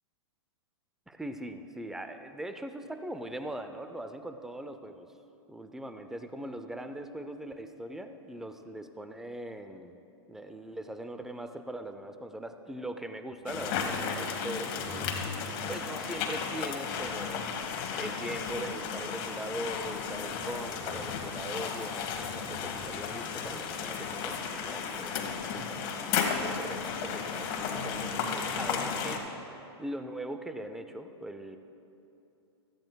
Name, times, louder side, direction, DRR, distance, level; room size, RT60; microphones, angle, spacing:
voice 1, 1.1-5.1 5.5-10.0 10.3-15.1 15.7-17.5 18.0-29.2 29.8-31.6, right 1 dB, 5° right, 8 dB, 0.5 m, -41 dB
sound 1, 13.5-29.2, left 6 dB, 45° left, 1.4 m, -34 dB
16.5 x 13.5 x 2.3 m, 2.8 s
hypercardioid pair, 130°, 15 cm